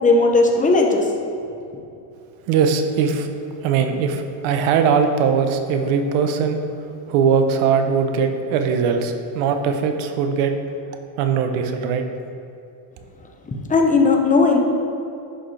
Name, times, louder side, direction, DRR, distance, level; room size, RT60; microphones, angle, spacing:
voice 1, 0.0-1.0 13.5-14.6, left 3 dB, 15° left, 1 dB, 0.9 m, -16 dB
voice 2, 2.5-3.3 3.6-6.6 7.1-10.5 11.2-12.1, right 6 dB, 75° right, 6 dB, 1.0 m, -20 dB
10.5 x 6.3 x 3.3 m, 2.7 s
cardioid pair, 135°, 49 cm